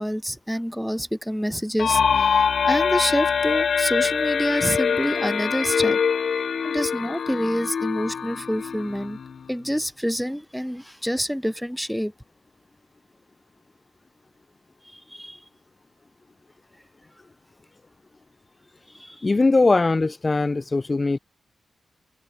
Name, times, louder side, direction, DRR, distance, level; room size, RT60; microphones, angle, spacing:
voice 1, 0.0-6.0 6.6-9.2 9.5-12.1 14.9-15.4 19.0-19.3, equal, ahead, 1.9 m, -27 dB
sound 1, 1.8-9.4, left 6 dB, 65° left, 1.3 m, -24 dB
voice 2, 19.2-21.2, left 3 dB, 25° left, 1.6 m, -20 dB
wide cardioid pair, 105°, 0 cm